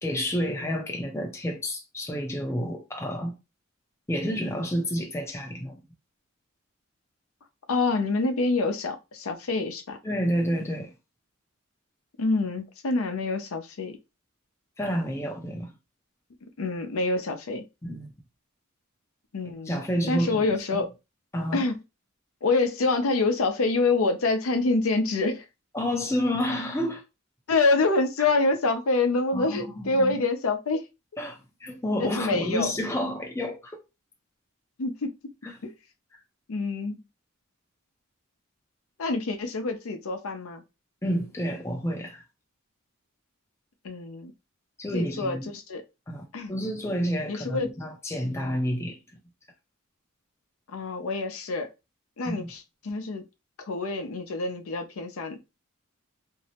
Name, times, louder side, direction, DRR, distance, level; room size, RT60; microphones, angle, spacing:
voice 1, 0.0-3.4 4.1-5.8 10.0-10.9 14.8-15.7 17.8-18.1 19.4-20.8 21.3-21.6 25.7-27.0 28.2-28.3 29.3-30.2 31.2-33.8 35.4-35.6 41.0-42.2 44.8-45.5 46.1-49.0 52.3-52.5, equal, 15° left, 0.5 m, -30 dB
voice 2, 7.7-10.0 12.2-14.0 16.6-17.6 19.3-19.8 20.1-20.9 21.5-21.8 22.4-25.4 27.5-30.8 32.0-32.7 34.8-35.1 35.6-35.7 36.5-37.0 39.0-40.6 43.8-44.3 44.9-45.8 46.3-46.5 47.3-47.7 48.4-48.6 50.7-51.7 52.2-53.2 53.7-55.6, left 3 dB, 80° left, 0.5 m, -26 dB
2.6 x 2.0 x 2.8 m
head